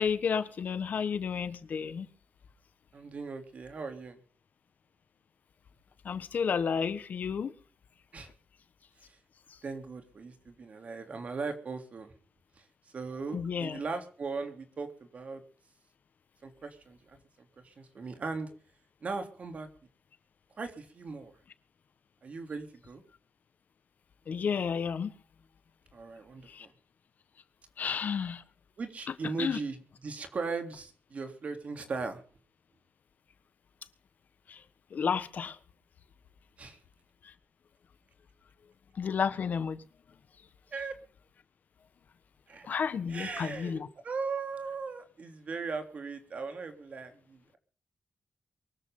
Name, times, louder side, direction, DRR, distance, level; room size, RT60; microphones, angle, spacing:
voice 1, 0.0-2.1 6.0-7.5 13.3-13.8 24.3-25.1 26.5-26.7 27.8-28.4 29.4-29.6 34.5-34.6 34.9-35.6 37.2-37.3 39.0-39.8 42.7-43.9, left 6 dB, 65° left, 1.4 m, -31 dB
voice 2, 2.9-4.2 8.1-8.3 9.0-9.2 9.6-12.1 12.6-12.7 12.9-15.4 16.4-17.2 17.6-18.5 19.0-19.7 20.6-21.3 22.2-23.0 25.9-26.7 28.8-32.2 36.6-36.8 40.7-40.9 42.5-42.7 43.1-47.6, right 4 dB, 50° right, 3.4 m, -38 dB
23.5 x 13.5 x 3.9 m
wide cardioid pair, 160°, 3 cm